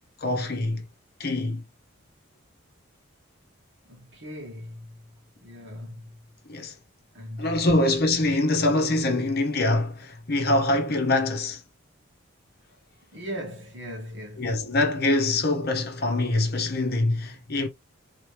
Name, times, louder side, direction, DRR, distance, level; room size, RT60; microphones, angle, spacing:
voice 1, 0.2-0.8 1.2-1.6 6.5-6.7 7.4-11.6 14.4-17.7, left 2 dB, 50° left, 1.1 m, -24 dB
voice 2, 3.9-5.1 5.4-6.2 7.1-7.9 13.1-14.6, equal, 60° right, 2.1 m, -39 dB
4.0 x 3.1 x 3.3 m
head